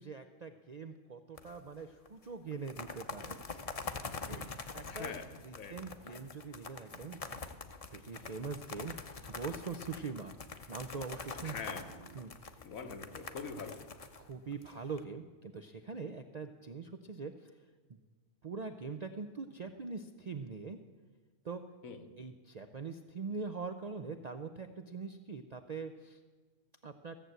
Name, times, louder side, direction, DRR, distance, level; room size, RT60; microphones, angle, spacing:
voice 1, 0.0-3.4 4.3-5.1 5.4-7.4 7.9-9.0 9.3-10.3 10.7-12.6 14.2-17.5 18.4-20.8 21.4-21.6 22.2-26.2 26.8-27.2, right 4 dB, 55° right, 7 dB, 0.4 m, -43 dB
sound 1, 1.4-1.8 2.1-2.2 2.5-15.0, left 4 dB, 35° left, 0.6 m, -45 dB
voice 2, 4.9-5.8 11.4-11.9 12.6-13.9 21.8-22.1, left 5 dB, 80° left, 7 dB, 1.5 m, -44 dB
14.5 x 7.5 x 8.0 m, 1.4 s
omnidirectional pair, 1.4 m